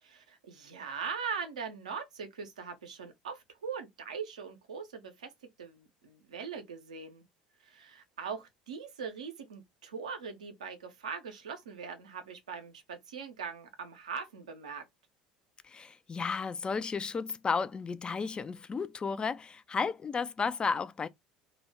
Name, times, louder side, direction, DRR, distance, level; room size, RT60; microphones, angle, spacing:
voice 1, 0.0-5.3 5.6-7.2 7.6-14.8, right 6 dB, 80° right, 0.6 m, -41 dB
voice 2, 15.6-21.1, left 5 dB, 25° left, 0.3 m, -33 dB
2.3 x 2.1 x 3.2 m
hypercardioid pair, 70°, 4 cm